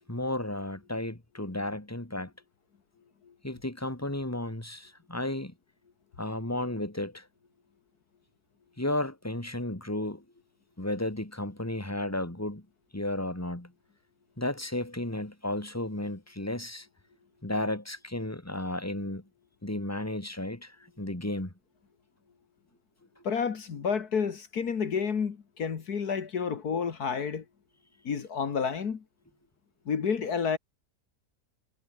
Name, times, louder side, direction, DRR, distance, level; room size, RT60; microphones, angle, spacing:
voice 1, 0.0-2.3 3.4-5.5 6.2-7.2 8.8-10.2 10.8-12.6 12.9-13.7 14.4-16.9 17.4-19.2 19.6-21.5, left 1 dB, 10° left, 3.3 m, -33 dB
voice 2, 23.2-27.4 28.0-29.0 29.9-30.6, left 6 dB, 70° left, 2.2 m, -30 dB
omnidirectional pair, 1.7 m